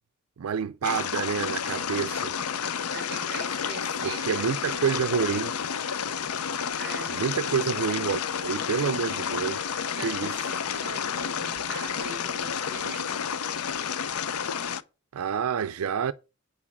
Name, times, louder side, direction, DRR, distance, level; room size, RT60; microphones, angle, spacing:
voice 1, 0.4-2.4 4.0-5.6 7.1-9.7 10.0-10.4 15.1-16.1, right 7 dB, 80° right, 0.4 m, -28 dB
sound 1, 0.8-14.8, left 7 dB, 85° left, 0.6 m, -30 dB
voice 2, 2.9-4.4 6.7-7.2 9.9-13.3, right 4 dB, 50° right, 0.9 m, -42 dB
8.5 x 6.0 x 6.0 m
head